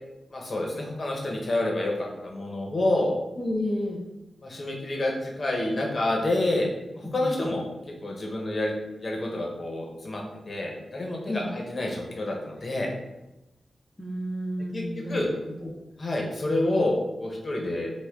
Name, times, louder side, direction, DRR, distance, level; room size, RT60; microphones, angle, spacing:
voice 1, 0.3-3.1 4.4-6.7 6.9-7.6 8.0-8.7 9.0-12.9 14.7-14.8 15.1-15.3 16.0-17.9, left 1 dB, 45° left, 0 dB, 1.0 m, -28 dB
voice 2, 3.4-4.0 7.0-7.4 11.3-11.5 14.0-15.3 15.6-15.7, left 1 dB, 20° left, -3 dB, 0.8 m, -31 dB
5.7 x 2.4 x 3.7 m, 0.97 s
wide cardioid pair, 85°, 0 cm